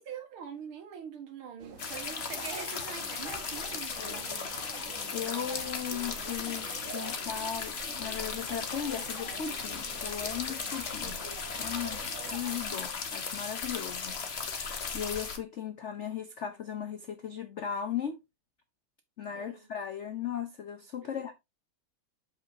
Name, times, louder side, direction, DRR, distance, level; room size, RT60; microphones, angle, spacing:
voice 1, 0.0-4.3 12.7-12.9 19.3-19.7 21.0-21.1, right 7 dB, 85° right, 2.3 m, -44 dB
sound 1, 1.6-12.6, right 4 dB, 45° right, 1.2 m, -47 dB
sound 2, 1.8-15.4, left 5 dB, 40° left, 1.0 m, -37 dB
voice 2, 5.1-11.2 11.6-18.2 19.2-21.3, left 8 dB, 85° left, 0.6 m, -37 dB
8.1 x 5.5 x 2.7 m
omnidirectional pair, 2.3 m